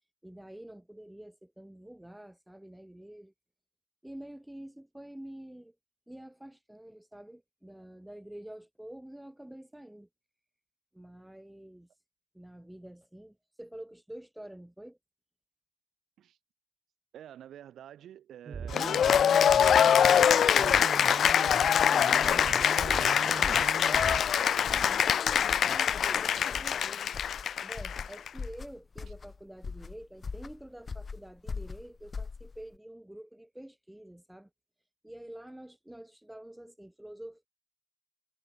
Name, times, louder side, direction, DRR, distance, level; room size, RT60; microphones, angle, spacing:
voice 1, 0.2-3.3 4.0-5.7 6.1-10.1 10.9-11.9 12.3-15.0 21.7-23.6 24.8-27.1 27.6-34.5 35.0-37.5, right 1 dB, 5° right, 6.5 m, -48 dB
voice 2, 17.1-19.1 19.5-21.3 22.5-24.9 29.0-29.1, right 11 dB, 80° right, 7.2 m, -49 dB
sound 1, 18.5-24.2, right 6 dB, 55° right, 1.7 m, -40 dB
Cheering / Applause, 18.7-28.3, left 8 dB, 65° left, 1.1 m, -24 dB
sound 2, 22.1-32.8, left 5 dB, 40° left, 7.2 m, -42 dB
cardioid pair, 70°, 0 cm